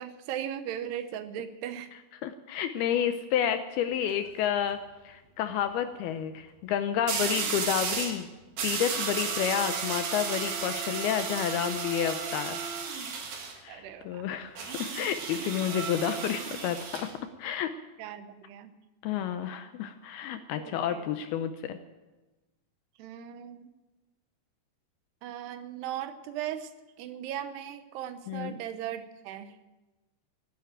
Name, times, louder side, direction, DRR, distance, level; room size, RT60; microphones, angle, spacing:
voice 1, 0.0-1.9 13.7-14.2 18.0-18.7 20.6-21.1 23.0-23.7 25.2-26.7 27.0-29.5, right 10 dB, 75° right, 10 dB, 2.9 m, -38 dB
voice 2, 2.2-4.8 5.0-8.3 8.6-12.9 13.6-17.1 17.4-17.7 19.0-21.8 28.3-28.5, left 9 dB, 75° left, 9 dB, 2.4 m, -30 dB
sound 1, 3.9-4.3 7.1-8.2 8.6-13.6 14.6-17.1, right 5 dB, 55° right, 2.8 m, -33 dB
15.0 x 11.0 x 8.8 m, 1.1 s
omnidirectional pair, 4.9 m